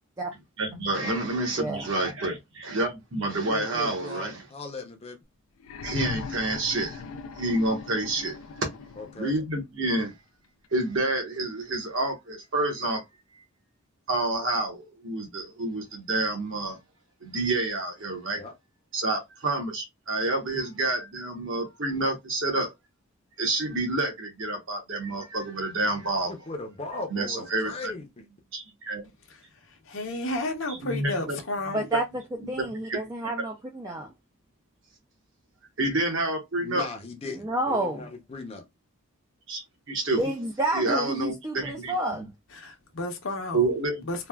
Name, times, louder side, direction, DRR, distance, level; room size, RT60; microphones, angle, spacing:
voice 1, 0.6-4.4 5.8-7.0 7.4-8.4 9.2-10.1 10.7-13.0 14.1-16.8 17.2-18.4 18.9-22.7 23.4-26.3 27.1-27.9 28.5-29.0 30.7-31.4 31.9-32.0 32.5-33.0 35.8-36.9 39.5-40.2 40.7-42.3 43.5-44.0, right 2 dB, 60° right, 1.1 m, -28 dB
voice 2, 1.6-1.9 31.7-32.0 32.5-34.1 37.3-38.0 40.2-42.3, right 1 dB, 15° right, 0.3 m, -29 dB
voice 3, 3.4-5.2 9.0-9.3 18.4-18.5 26.3-28.3 36.6-38.6 40.1-40.3, left 3 dB, 25° left, 0.6 m, -38 dB
sound 1, 5.6-9.4 10.6-10.7, left 5 dB, 75° left, 0.4 m, -39 dB
voice 4, 29.9-31.9 42.5-43.7 44.0-44.3, left 2 dB, 60° left, 0.8 m, -32 dB
3.2 x 2.3 x 2.2 m
head